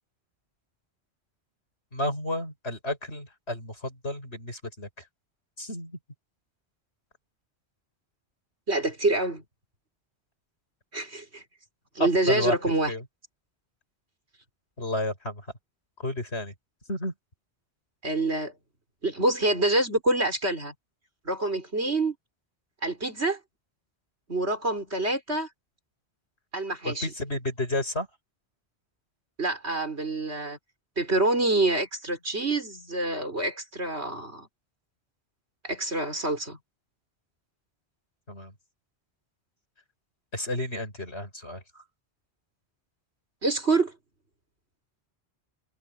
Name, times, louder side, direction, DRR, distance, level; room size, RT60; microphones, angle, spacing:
voice 1, 1.9-4.9 5.6-6.0 12.0-12.6 12.9-13.0 14.8-15.4 16.0-16.5 16.9-17.1 26.8-28.1 38.3-38.5 40.3-41.6, left 1 dB, 90° left, 7.7 m, -31 dB
voice 2, 8.7-9.4 10.9-11.4 12.0-12.9 18.0-18.5 19.0-20.7 21.3-22.2 22.8-23.4 24.3-25.5 26.5-27.1 29.4-30.6 31.0-34.5 35.6-36.6 43.4-43.9, right 2 dB, 85° right, 5.6 m, -26 dB
omnidirectional pair, 1.1 m